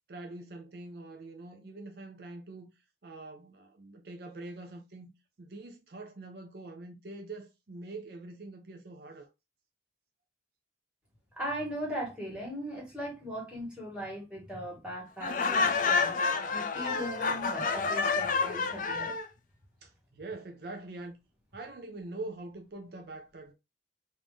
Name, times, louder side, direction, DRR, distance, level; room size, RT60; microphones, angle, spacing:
voice 1, 0.1-2.7 3.0-5.1 5.4-9.3 19.8-21.2 21.5-23.5, right 2 dB, 60° right, 0.5 m, -44 dB
voice 2, 11.4-19.1, equal, 5° right, 1.7 m, -39 dB
Laughter, 15.2-19.3, left 4 dB, 45° left, 0.4 m, -29 dB
3.6 x 2.6 x 3.1 m
head